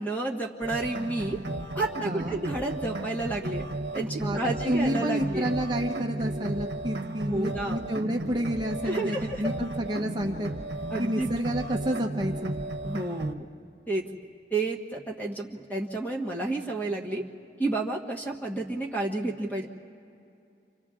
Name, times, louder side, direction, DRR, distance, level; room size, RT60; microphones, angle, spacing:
voice 1, 0.0-1.4 1.7-3.6 3.9-5.5 7.2-7.8 8.8-9.5 10.9-11.3 12.8-13.5 13.9-14.0 14.5-17.2 17.6-19.7, right 2 dB, 10° left, 1 dB, 1.4 m, -30 dB
sound 1, 0.6-13.3, right 2 dB, 75° right, 1.1 m, -34 dB
voice 2, 2.0-2.4 4.2-4.4 4.7-10.5 11.0-12.5, equal, 25° right, 1 dB, 1.0 m, -29 dB
30.0 x 26.5 x 3.8 m, 2.6 s
head